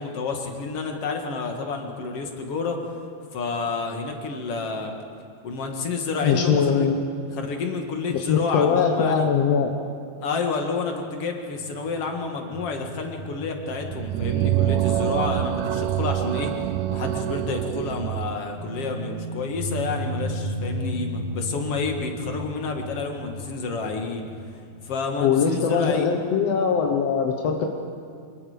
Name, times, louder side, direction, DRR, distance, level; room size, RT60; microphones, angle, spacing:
voice 1, 0.0-2.8 3.3-5.0 5.4-6.9 7.3-9.3 10.2-16.5 16.9-24.2 24.8-26.1, left 4 dB, 45° left, 3 dB, 2.4 m, -29 dB
voice 2, 6.2-7.0 8.1-9.7 25.2-27.7, left 6 dB, 65° left, 3 dB, 1.7 m, -21 dB
sound 1, 11.5-16.9 17.2-17.3 18.5-25.1, equal, ahead, 3.6 m, -35 dB
sound 2, 13.8-18.4, right 13 dB, 80° right, 2.4 m, -25 dB
26.5 x 21.5 x 5.1 m, 2.4 s
omnidirectional pair, 4.3 m